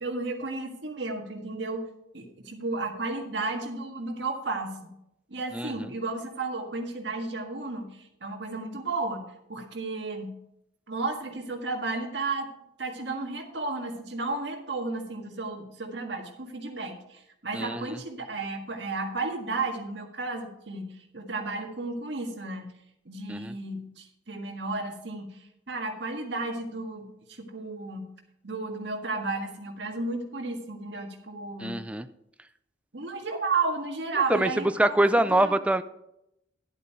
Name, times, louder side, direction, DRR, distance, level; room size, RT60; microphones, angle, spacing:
voice 1, 0.0-1.9 2.1-4.9 5.3-9.2 9.5-10.3 10.9-12.5 12.8-20.9 21.1-22.7 23.0-28.0 28.4-31.8 32.9-35.6, right 3 dB, 65° right, 3 dB, 1.7 m, -33 dB
voice 2, 5.5-5.9 17.5-18.0 23.3-23.5 31.6-32.1 34.3-34.5 34.8-35.8, right 1 dB, 5° right, 11 dB, 0.4 m, -24 dB
11.0 x 8.2 x 4.5 m, 0.82 s
head